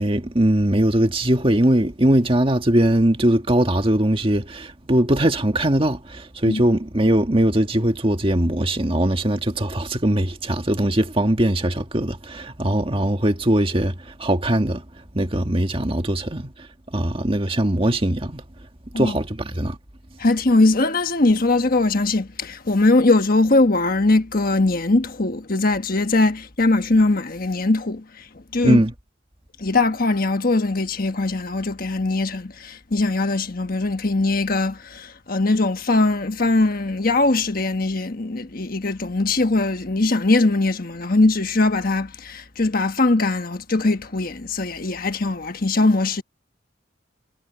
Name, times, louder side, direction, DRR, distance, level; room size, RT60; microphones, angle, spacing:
voice 1, 0.0-14.8 15.1-16.5 16.9-18.4 19.0-19.8 28.6-28.9, right 1 dB, 30° right, 1.7 m, -20 dB
voice 2, 20.2-28.3 28.5-28.8 29.6-46.2, left 2 dB, 45° left, 1.3 m, -21 dB
head